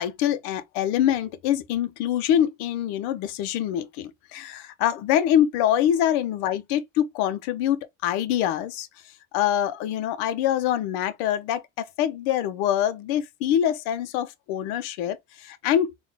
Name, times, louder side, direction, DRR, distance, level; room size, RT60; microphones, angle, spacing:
voice 1, 0.0-8.9 9.3-15.9, left 10 dB, 60° left, 0.8 m, -25 dB
3.5 x 2.6 x 3.4 m
hypercardioid pair, 85°, 41 cm